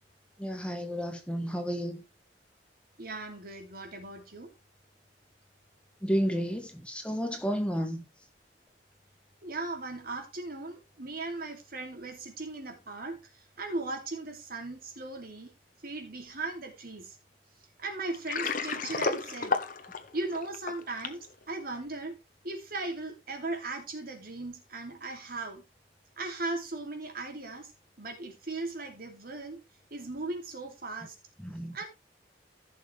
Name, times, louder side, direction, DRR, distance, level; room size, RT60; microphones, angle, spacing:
voice 1, 0.4-2.0 6.0-8.0 31.4-31.8, equal, 5° left, 1.4 m, -31 dB
voice 2, 3.0-4.5 9.4-13.2 13.6-15.5 15.8-17.2 17.8-19.6 20.1-22.1 22.4-25.6 26.2-27.7 28.0-29.6 29.9-31.1 31.7-31.9, right 2 dB, 55° right, 2.9 m, -38 dB
Water, 18.1-21.3, left 4 dB, 50° left, 1.3 m, -32 dB
15.0 x 6.5 x 3.4 m
head